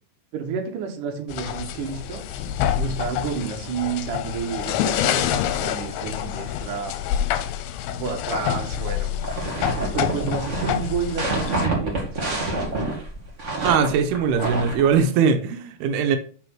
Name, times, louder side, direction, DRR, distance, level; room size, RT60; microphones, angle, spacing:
voice 1, 0.3-2.2 2.7-6.9 8.0-9.1 9.9-12.5, right 6 dB, 60° right, 2.7 m, -30 dB
sound 1, 1.3-11.7, left 10 dB, 85° left, 2.5 m, -27 dB
sound 2, 9.1-14.9, right 2 dB, 35° right, 1.2 m, -27 dB
voice 2, 13.6-16.2, right 6 dB, 90° right, 2.8 m, -20 dB
6.1 x 6.0 x 4.6 m
omnidirectional pair, 4.5 m